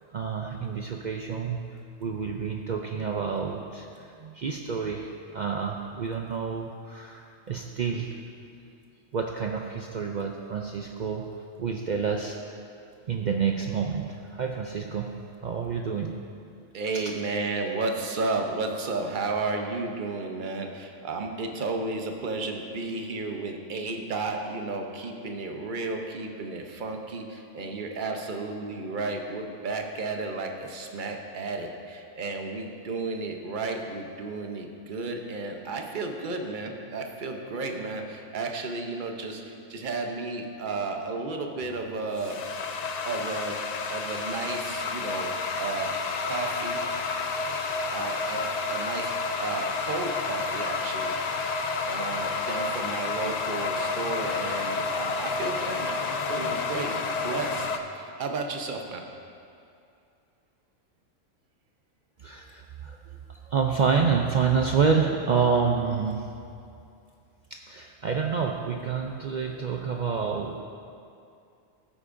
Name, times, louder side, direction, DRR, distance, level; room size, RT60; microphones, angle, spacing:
voice 1, 0.1-1.6 2.0-8.1 9.1-11.3 11.6-12.4 13.1-15.1 15.4-16.1 16.9-17.2 62.2-63.0 63.5-66.2 67.5-70.6, right 6 dB, 75° right, 1 dB, 0.4 m, -28 dB
voice 2, 16.7-42.4 43.0-43.6 43.9-45.3 45.6-45.9 46.2-46.8 47.9-51.2 51.5-57.7 57.9-59.0, right 3 dB, 45° right, 3 dB, 0.8 m, -33 dB
sound 1, 41.6-57.8, left 4 dB, 80° left, 0.3 m, -30 dB
15.5 x 8.5 x 2.6 m, 2.5 s
omnidirectional pair, 1.4 m